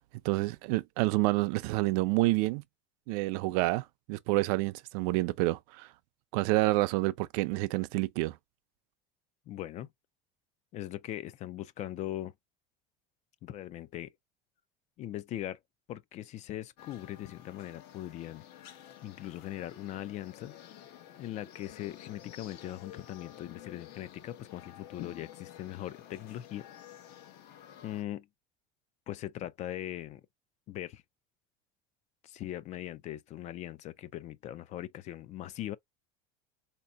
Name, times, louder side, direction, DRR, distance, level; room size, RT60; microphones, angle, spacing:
voice 1, 0.2-2.6 3.1-5.9 6.3-8.3, right 21 dB, 75° right, 0.5 m, -28 dB
voice 2, 9.5-9.9 10.7-12.3 13.4-14.1 15.0-15.6 15.9-18.5 19.0-20.5 21.2-26.7 27.8-28.3 29.1-30.2 30.7-31.0 32.2-35.8, left 13 dB, 35° left, 0.4 m, -40 dB
sound 1, 16.8-28.0, left 11 dB, 55° left, 0.9 m, -51 dB
4.2 x 2.8 x 2.3 m
cardioid pair, 150°, 20 cm